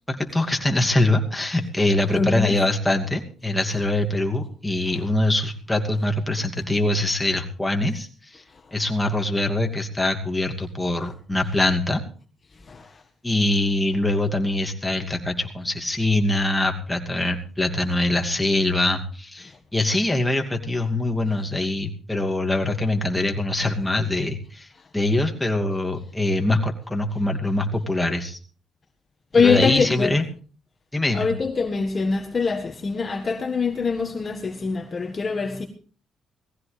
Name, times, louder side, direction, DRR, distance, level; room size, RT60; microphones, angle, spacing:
voice 1, 0.1-8.4 8.7-12.0 13.2-24.7 24.9-28.4 29.4-30.3 30.9-31.3, left 1 dB, 10° left, 2.6 m, -23 dB
voice 2, 2.1-2.6 12.7-12.9 29.3-30.2 31.1-35.7, left 4 dB, 35° left, 1.6 m, -23 dB
19.0 x 15.0 x 3.4 m
cardioid pair, 90°, 0 cm